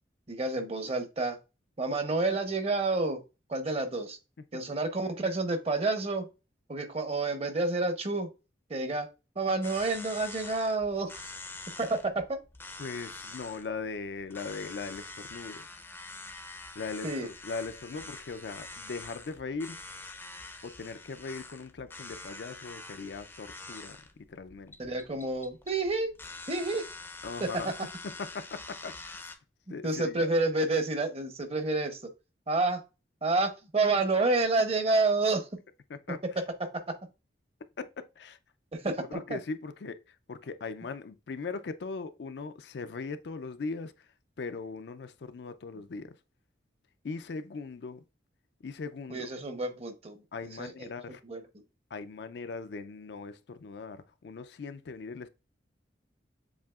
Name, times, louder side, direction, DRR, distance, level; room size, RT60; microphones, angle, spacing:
voice 1, 0.3-1.4 1.8-3.2 3.5-4.2 4.5-6.3 6.7-8.3 8.7-9.1 9.4-11.3 11.8-12.4 17.0-17.3 24.8-26.1 26.5-26.9 27.4-27.5 29.8-32.0 32.5-32.8 33.2-35.5 36.6-36.7 38.7-39.4 49.1-50.2 50.6-50.9 51.3-51.4, right 3 dB, 35° right, 0.8 m, -29 dB
sound 1, 9.6-29.4, left 3 dB, 10° left, 0.5 m, -45 dB
voice 2, 12.8-15.7 16.8-19.8 20.6-24.9 27.2-27.7 28.0-29.3 29.7-30.3 35.9-36.2 37.8-38.4 39.1-44.1 44.4-46.2 47.0-48.0 48.6-49.3 50.3-51.2 51.9-55.3, left 4 dB, 65° left, 0.4 m, -39 dB
7.2 x 2.8 x 2.3 m
head